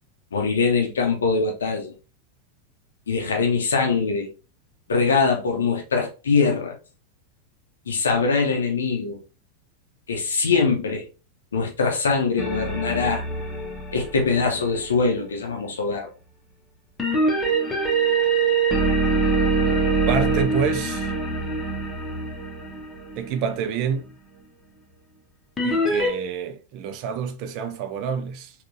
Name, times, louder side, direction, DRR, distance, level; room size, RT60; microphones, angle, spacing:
voice 1, 0.3-1.9 3.1-4.3 4.9-6.7 7.9-9.2 10.1-11.1 11.5-13.2 13.9-16.1, left 4 dB, 70° left, 0.6 m, -22 dB
sound 1, 12.4-15.1 17.0-23.5 25.6-26.1, right 3 dB, 15° left, 0.7 m, -24 dB
voice 2, 20.1-21.1 23.2-24.1 25.6-28.5, right 6 dB, 40° right, 0.4 m, -27 dB
3.7 x 2.3 x 2.5 m
figure-of-eight pair, 90°, 0 cm